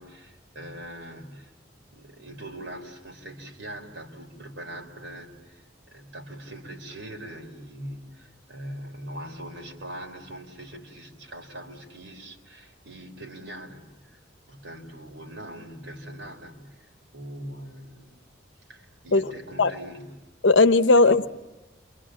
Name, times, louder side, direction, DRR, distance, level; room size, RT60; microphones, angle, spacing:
voice 1, 0.0-1.5 1.9-14.2 14.5-18.2 18.7-20.1 20.9-21.2, right 1 dB, 85° right, 3.8 m, -42 dB
voice 2, 20.4-21.3, left 3 dB, 75° left, 0.8 m, -17 dB
29.5 x 24.5 x 7.7 m
head